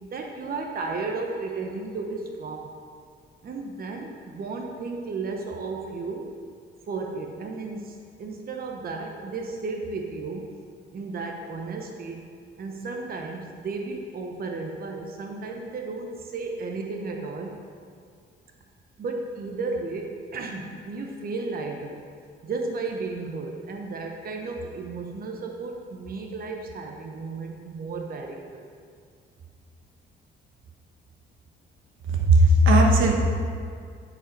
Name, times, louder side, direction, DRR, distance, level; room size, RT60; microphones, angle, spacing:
voice 1, 0.0-2.7 3.4-6.2 6.9-10.6 10.9-12.2 12.6-17.5 19.0-22.0 22.4-28.7, right 3 dB, 50° right, 2 dB, 0.9 m, -34 dB
voice 2, 32.1-33.1, right 1 dB, 80° right, 1 dB, 1.2 m, -17 dB
11.0 x 4.9 x 5.3 m, 2.2 s
cardioid pair, 90°, 20 cm